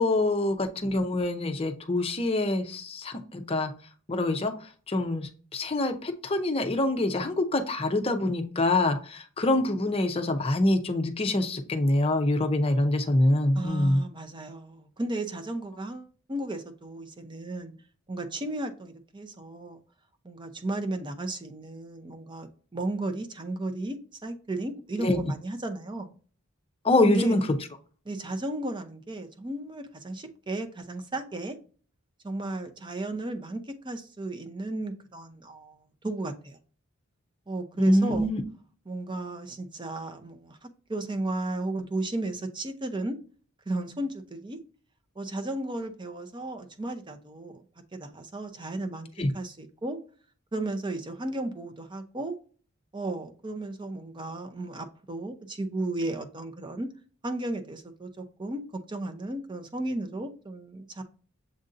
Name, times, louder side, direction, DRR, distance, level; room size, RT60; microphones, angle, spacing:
voice 1, 0.0-3.7 4.1-4.5 4.9-14.0 25.0-25.2 26.8-27.5 37.8-38.4 49.2-49.3, left 2 dB, 25° left, 7 dB, 0.6 m, -25 dB
voice 2, 13.5-17.7 18.1-19.8 20.2-26.1 26.9-27.4 28.1-31.6 32.2-36.6 37.5-38.3 38.9-43.2 43.7-44.6 45.2-47.6 47.9-49.1 49.3-50.0 50.5-52.3 52.9-56.9 57.2-61.0, right 2 dB, 20° right, 6 dB, 0.6 m, -34 dB
7.5 x 2.6 x 2.5 m, 0.40 s
head